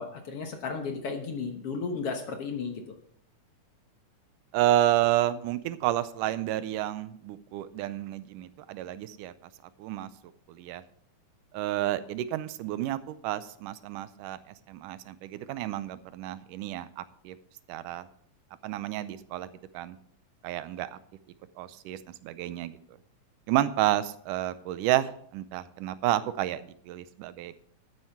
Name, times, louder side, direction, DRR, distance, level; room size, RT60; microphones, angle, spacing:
voice 1, 0.0-2.8, left 5 dB, 60° left, 4 dB, 1.8 m, -34 dB
voice 2, 4.5-9.3 9.8-10.1 10.5-10.8 11.5-17.4 17.7-18.1 18.6-20.0 20.4-21.0 21.6-22.7 23.5-27.6, right 13 dB, 85° right, 14 dB, 2.2 m, -30 dB
12.0 x 9.2 x 4.5 m, 0.63 s
omnidirectional pair, 3.6 m